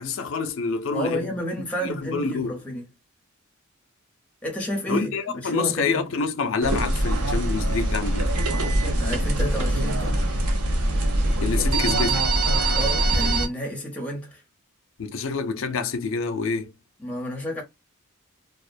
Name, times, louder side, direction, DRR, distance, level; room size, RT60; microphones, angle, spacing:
voice 1, 0.0-1.4 1.8-2.6 4.9-8.4 11.4-12.3 15.0-16.7, left 4 dB, 65° left, 0.4 m, -27 dB
voice 2, 0.9-2.9 4.4-6.0 9.0-10.2 12.7-14.4 17.0-17.6, equal, 5° left, 0.7 m, -31 dB
sound 1, 6.6-13.5, right 1 dB, 85° right, 0.6 m, -23 dB
2.3 x 2.1 x 2.5 m
head